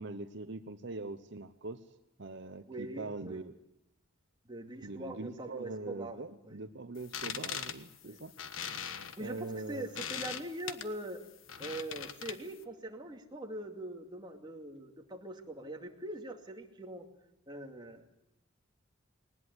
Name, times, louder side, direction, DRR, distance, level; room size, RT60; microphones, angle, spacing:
voice 1, 0.0-1.9 2.2-3.5 4.8-8.3 9.2-9.9, right 2 dB, 60° right, 9 dB, 0.9 m, -42 dB
voice 2, 2.7-3.4 4.5-6.2 6.4-6.6 8.0-8.2 9.2-11.2 11.6-17.1 17.5-18.0, right 1 dB, 20° right, 2 dB, 2.5 m, -42 dB
sound 1, 7.0-12.6, left 8 dB, 80° left, 1.4 m, -41 dB
19.5 x 19.5 x 9.7 m, 0.84 s
head